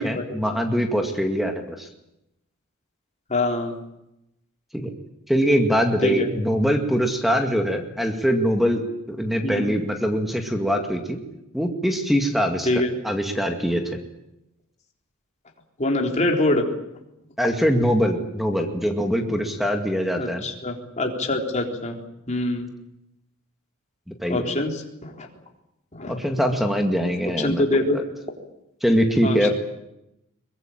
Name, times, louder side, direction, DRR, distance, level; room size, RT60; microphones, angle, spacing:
voice 1, 0.0-1.9 4.7-4.9 5.3-8.8 9.1-11.2 11.5-12.7 13.0-14.0 17.4-20.5 24.1-24.4 26.1-28.0 28.8-29.5, equal, ahead, 4 dB, 2.2 m, -23 dB
voice 2, 3.3-3.7 6.0-6.3 9.4-9.6 12.6-12.9 15.8-16.7 20.1-22.0 22.3-22.7 24.3-25.3 25.9-26.1 27.4-28.0 29.2-29.5, left 2 dB, 35° left, 1 dB, 3.8 m, -24 dB
23.5 x 21.5 x 9.0 m, 0.86 s
head